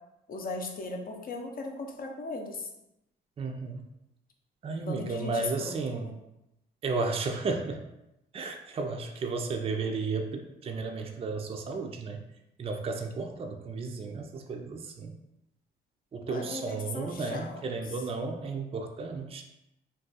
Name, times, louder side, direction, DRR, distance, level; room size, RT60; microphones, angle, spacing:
voice 1, 0.3-2.7 4.8-5.7 16.3-17.6, left 3 dB, 45° left, 2 dB, 0.6 m, -37 dB
voice 2, 3.4-3.9 4.6-6.1 6.8-7.8 8.3-12.2 12.6-15.1 16.1-19.4, right 4 dB, 30° right, 4 dB, 0.4 m, -33 dB
2.5 x 2.3 x 3.9 m, 0.89 s
cardioid pair, 90°, 20 cm